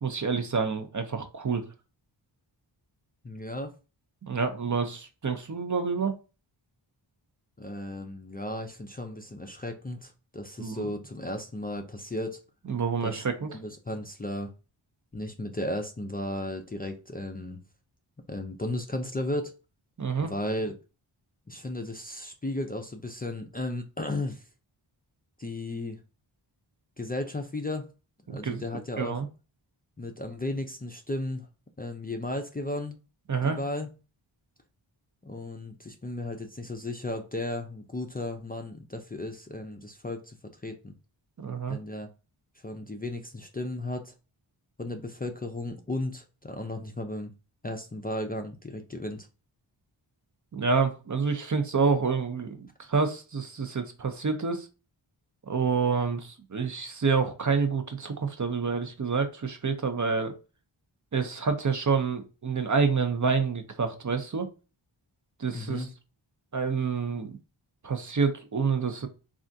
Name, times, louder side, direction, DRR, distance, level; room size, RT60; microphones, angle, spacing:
voice 1, 0.0-1.7 4.2-6.1 10.6-10.8 12.7-13.5 20.0-20.3 28.3-28.6 29.0-29.3 33.3-33.6 41.4-41.8 50.5-54.7 55.5-60.4 61.1-64.5 65.4-65.9 66.5-67.4 67.8-69.1, right 5 dB, 40° right, 0.6 m, -28 dB
voice 2, 3.2-3.8 7.6-12.4 13.0-13.2 13.5-14.5 15.1-17.6 18.3-19.5 20.2-20.8 21.5-24.4 25.4-26.0 27.0-27.9 28.3-29.2 30.0-31.5 31.8-33.0 33.4-33.9 35.2-40.4 40.6-41.0 41.7-42.1 42.6-44.1 44.8-47.3 47.6-49.3 65.5-65.9, left 1 dB, 20° left, 0.4 m, -35 dB
3.4 x 2.4 x 2.6 m
wide cardioid pair, 50°, 48 cm